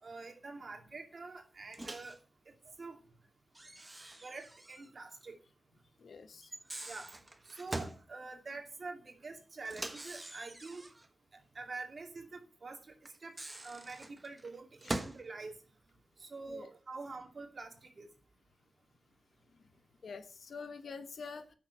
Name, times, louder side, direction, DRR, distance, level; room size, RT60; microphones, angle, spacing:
voice 1, 0.0-2.2 2.5-2.6 2.8-3.0 4.2-5.4 6.9-7.1 7.5-10.8 11.3-12.9 13.2-13.4 13.6-15.5 16.2-18.1, right 3 dB, 50° right, 3 dB, 2.5 m, -46 dB
Microwave oven, 1.7-2.2 3.5-4.9 5.2-5.3 6.4-8.0 9.6-11.1 13.1-15.2, right 1 dB, 20° right, 1.1 m, -43 dB
voice 2, 6.0-6.5 14.8-14.9 16.5-16.7 19.5-19.6 20.0-21.5, left 5 dB, 90° left, 10 dB, 1.2 m, -46 dB
9.6 x 6.6 x 6.7 m, 0.37 s
wide cardioid pair, 120°, 0 cm